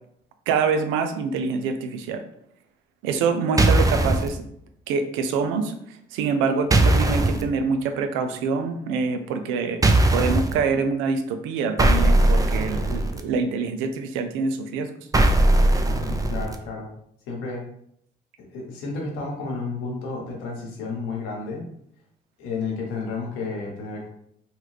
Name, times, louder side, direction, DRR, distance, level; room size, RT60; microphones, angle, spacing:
voice 1, 0.5-2.2 3.0-4.4 4.9-5.7 6.1-14.9, right 5 dB, 85° right, 8 dB, 0.4 m, -25 dB
sound 1, 3.6-4.3 6.7-7.4 9.8-10.5 11.8-13.2 15.1-16.6, right 1 dB, 15° right, 0.4 m, -19 dB
voice 2, 15.9-16.9 17.3-17.6 18.4-21.7 22.4-24.1, left 4 dB, 85° left, -1 dB, 1.0 m, -32 dB
3.0 x 2.4 x 3.2 m, 0.72 s
supercardioid pair, 60°, 20 cm